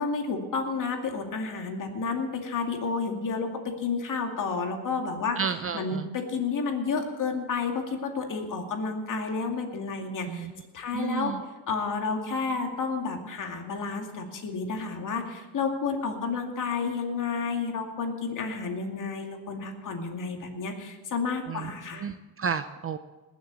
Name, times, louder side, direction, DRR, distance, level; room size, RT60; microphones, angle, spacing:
voice 1, 0.0-5.4 5.7-10.5 10.7-11.3 11.7-22.1, left 4 dB, 50° left, 3 dB, 2.5 m, -31 dB
voice 2, 5.4-6.1 10.3-10.5 10.9-11.4 21.5-21.7 22.0-23.0, right 6 dB, 35° right, 11 dB, 0.6 m, -31 dB
20.0 x 7.3 x 7.1 m, 1.2 s
cardioid pair, 110°, 41 cm